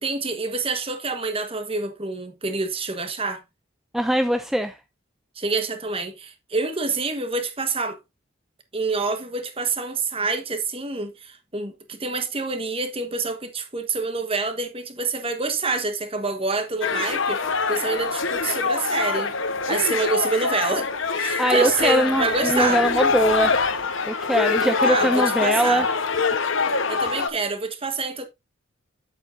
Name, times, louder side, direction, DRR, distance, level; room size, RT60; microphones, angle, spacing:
voice 1, 0.0-3.4 5.4-8.0 8.7-17.4 17.7-19.3 19.7-20.9 21.1-22.8 24.5-25.8 26.7-28.3, right 3 dB, 25° right, 1.3 m, -27 dB
voice 2, 3.9-4.8 21.4-23.5 24.1-25.9, right 1 dB, ahead, 0.4 m, -22 dB
sound 1, 16.8-27.3, left 4 dB, 65° left, 1.1 m, -24 dB
9.1 x 8.2 x 2.6 m
head